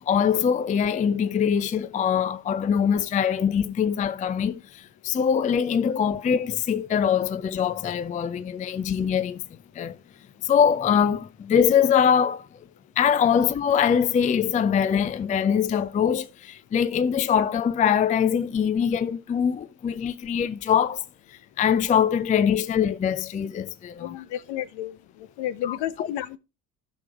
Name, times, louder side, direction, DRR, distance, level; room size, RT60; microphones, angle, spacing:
voice 1, 0.1-10.0 10.4-12.5 13.0-21.0 21.3-24.2 25.6-26.1, left 8 dB, 15° left, 0.4 m, -23 dB
voice 2, 24.0-26.4, left 11 dB, 60° left, 0.9 m, -32 dB
13.5 x 6.1 x 3.5 m
figure-of-eight pair, 55°, 47 cm